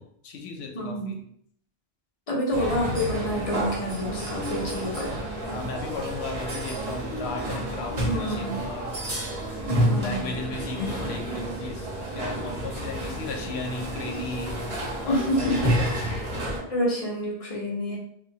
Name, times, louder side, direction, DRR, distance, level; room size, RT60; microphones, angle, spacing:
voice 1, 0.2-1.2 5.4-8.9 10.0-14.5 15.0-16.2, left 3 dB, 85° left, 2 dB, 0.8 m, -35 dB
voice 2, 0.7-1.1 2.3-5.2 8.0-8.6 9.7-10.3 15.0-15.8 16.1-16.3 16.7-18.0, equal, 40° left, -3 dB, 0.6 m, -28 dB
sound 1, 2.5-16.6, right 1 dB, 35° right, 0.8 m, -30 dB
2.8 x 2.2 x 2.7 m, 0.68 s
omnidirectional pair, 1.1 m